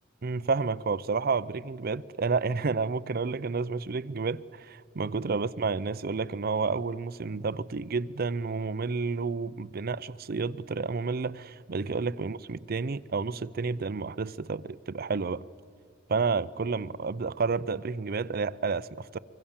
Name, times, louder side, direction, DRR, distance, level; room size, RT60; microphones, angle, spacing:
voice 1, 0.2-15.4 16.1-19.2, right 4 dB, 50° right, 0.5 m, -30 dB
24.5 x 24.0 x 7.3 m
head